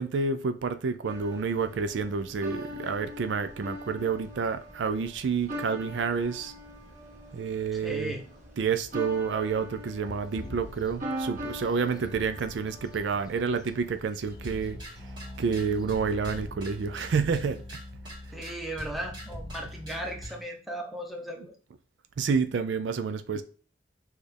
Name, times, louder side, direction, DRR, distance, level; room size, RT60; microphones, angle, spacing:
voice 1, 0.0-6.5 7.3-8.1 8.6-14.8 15.4-17.8 22.2-23.4, right 5 dB, 75° right, 0.4 m, -29 dB
sound 1, 1.0-14.0, equal, 40° right, 1.3 m, -41 dB
voice 2, 7.7-8.2 18.3-21.5, right 1 dB, ahead, 0.7 m, -36 dB
sound 2, 10.0-16.5, left 2 dB, 20° left, 0.3 m, -48 dB
sound 3, 14.3-20.4, equal, 25° right, 1.7 m, -41 dB
6.3 x 2.4 x 3.3 m
head